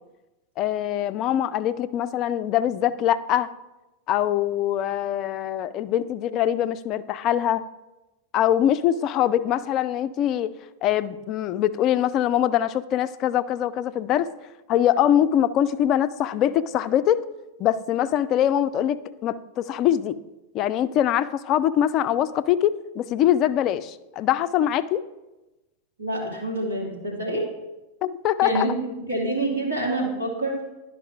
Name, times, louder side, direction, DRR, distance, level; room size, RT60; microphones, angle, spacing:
voice 1, 0.6-3.5 4.1-7.6 8.3-10.5 10.8-14.3 14.7-17.2 17.6-20.2 20.5-25.0 28.0-28.7, left 11 dB, 35° left, 14 dB, 0.3 m, -23 dB
voice 2, 26.0-27.5 28.4-30.6, right 1 dB, 80° right, -3 dB, 2.2 m, -27 dB
11.0 x 5.4 x 3.4 m, 1.0 s
figure-of-eight pair, 90°, 0 cm